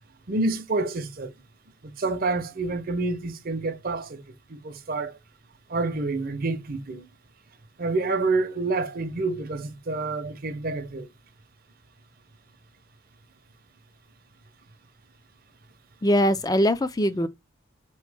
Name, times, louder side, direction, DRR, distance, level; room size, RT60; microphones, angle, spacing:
voice 1, 0.3-1.3 1.8-4.2 4.5-5.2 5.7-7.0 7.8-11.1, right 3 dB, 45° right, 0.7 m, -28 dB
voice 2, 16.0-17.3, equal, 20° left, 0.4 m, -22 dB
4.1 x 3.0 x 3.3 m
head